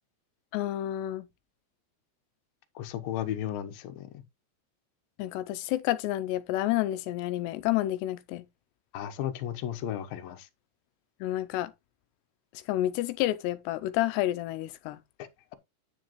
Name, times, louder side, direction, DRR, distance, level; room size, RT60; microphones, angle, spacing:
voice 1, 0.5-1.3 5.2-8.4 11.2-11.7 12.7-15.0, left 14 dB, 85° left, 2.8 m, -29 dB
voice 2, 2.8-4.1 8.9-10.5, left 11 dB, 70° left, 2.6 m, -34 dB
10.0 x 7.2 x 3.0 m
omnidirectional pair, 4.8 m